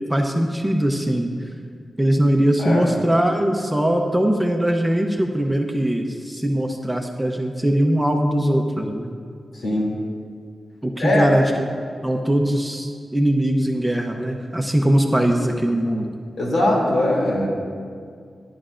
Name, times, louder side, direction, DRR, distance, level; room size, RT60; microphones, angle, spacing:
voice 1, 0.1-1.3 2.0-9.1 10.8-11.7 12.0-16.1, right 1 dB, 5° right, 2 dB, 0.7 m, -21 dB
voice 2, 9.6-10.0 11.0-11.3 16.4-17.5, left 1 dB, 70° left, -3 dB, 2.7 m, -20 dB
13.5 x 10.5 x 2.5 m, 2.1 s
wide cardioid pair, 100°, 0 cm